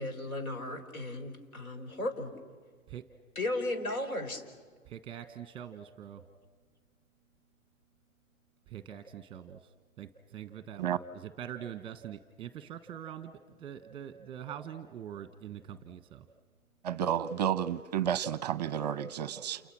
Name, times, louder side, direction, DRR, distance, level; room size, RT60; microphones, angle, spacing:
voice 1, 0.0-2.3 3.4-4.4, left 2 dB, 85° left, 6 dB, 5.5 m, -35 dB
voice 2, 4.9-6.2 8.7-9.7 10.0-16.3, right 9 dB, 10° right, 10 dB, 1.1 m, -44 dB
voice 3, 16.8-19.6, right 9 dB, 30° right, 17 dB, 0.7 m, -31 dB
30.0 x 29.0 x 6.2 m, 1.5 s
hypercardioid pair, 150°, 42 cm